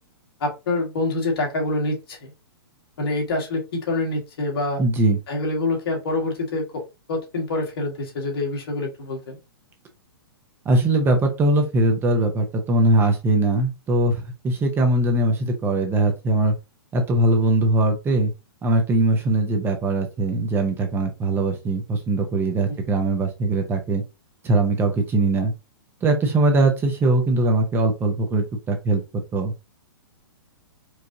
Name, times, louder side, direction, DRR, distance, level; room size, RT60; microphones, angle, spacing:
voice 1, 0.4-2.3 3.0-4.8 5.3-6.8 7.1-9.4 22.7-22.8, left 2 dB, 70° left, 0 dB, 1.8 m, -26 dB
voice 2, 4.8-5.2 10.6-16.5 16.9-18.3 18.6-24.0 24.4-25.5 26.0-29.0 29.3-29.5, right 2 dB, 15° right, 4 dB, 0.7 m, -21 dB
4.7 x 2.5 x 2.6 m, 0.27 s
hypercardioid pair, 135°, 13 cm